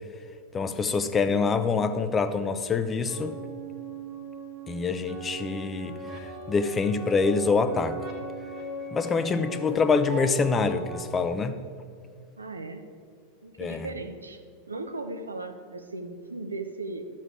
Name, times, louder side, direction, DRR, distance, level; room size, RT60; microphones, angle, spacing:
voice 1, 0.5-3.3 4.7-6.0 6.5-8.0 8.9-11.6 13.6-13.9, left 4 dB, 20° left, 11 dB, 0.7 m, -25 dB
sound 1, 3.1-11.0, right 3 dB, 35° right, 1.7 m, -39 dB
voice 2, 12.4-12.9 13.4-14.4 14.7-17.0, right 2 dB, 75° right, 7 dB, 0.8 m, -37 dB
12.0 x 7.3 x 4.6 m, 2.3 s
figure-of-eight pair, 90°, 0 cm